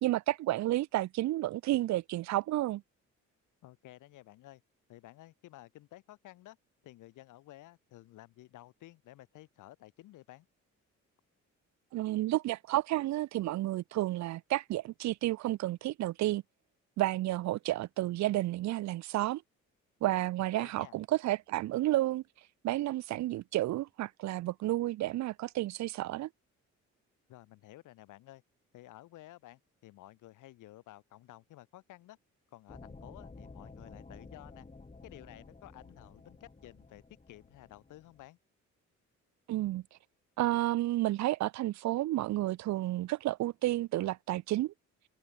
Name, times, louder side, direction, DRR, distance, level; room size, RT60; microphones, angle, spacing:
voice 1, 0.0-2.8 11.9-16.4 17.0-19.4 20.0-22.2 22.6-26.3 39.5-39.8 40.4-44.7, right 16 dB, 65° right, 0.5 m, -31 dB
voice 2, 3.6-4.6 4.9-6.6 6.8-10.5 20.4-21.0 27.3-28.4 28.7-32.2 32.5-34.7 35.0-38.4, left 16 dB, 90° left, 3.6 m, -53 dB
sound 1, 32.7-38.3, left 3 dB, 25° left, 7.8 m, -52 dB
cardioid pair, 90°, 30 cm